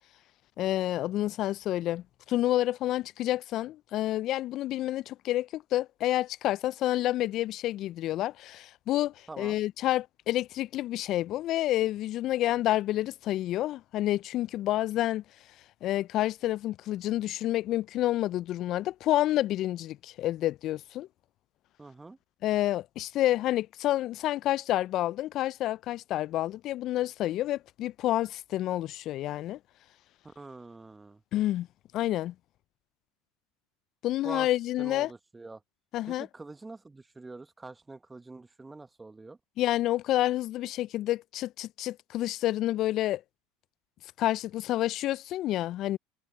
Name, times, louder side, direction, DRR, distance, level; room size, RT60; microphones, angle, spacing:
voice 1, 0.6-15.2 15.8-21.1 22.4-29.6 31.3-31.7 31.9-32.3 34.0-35.1 35.9-36.3 39.6-43.2 44.2-46.0, left 14 dB, 50° left, 0.6 m, -29 dB
voice 2, 21.8-22.2 30.2-31.2 34.2-34.5 34.8-35.6 36.1-39.4, right 3 dB, 15° right, 1.6 m, -45 dB
hypercardioid pair, 75°, 0 cm